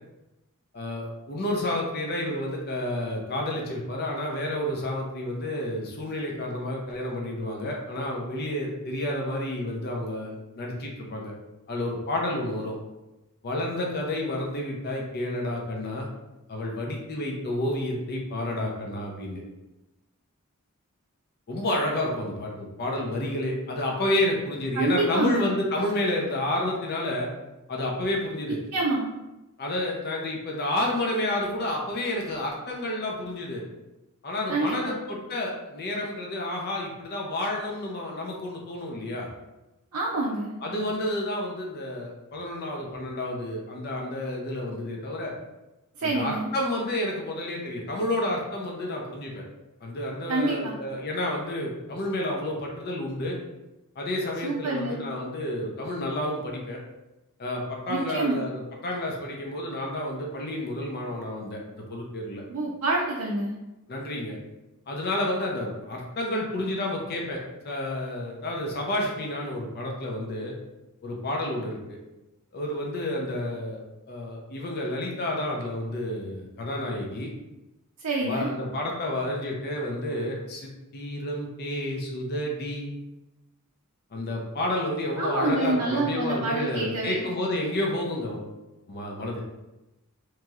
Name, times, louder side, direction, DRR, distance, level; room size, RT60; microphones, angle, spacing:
voice 1, 0.7-11.3 11.7-12.8 13.4-16.1 16.5-19.4 21.5-27.3 27.7-28.6 29.6-33.6 34.2-39.3 40.6-45.3 46.0-49.4 49.8-53.4 54.0-56.8 57.4-62.4 63.9-64.4 64.9-70.5 71.0-72.0 72.5-77.3 78.2-82.9 84.1-88.5 88.9-89.4, left 1 dB, 45° left, -1 dB, 0.5 m, -30 dB
voice 2, 24.7-25.5 28.7-29.1 34.5-35.0 39.9-40.6 46.0-46.5 50.3-50.7 54.4-55.0 57.9-58.4 62.5-63.5 78.0-78.5 85.2-87.2, right 2 dB, 85° right, -3 dB, 0.5 m, -27 dB
3.0 x 2.8 x 2.3 m, 0.99 s
head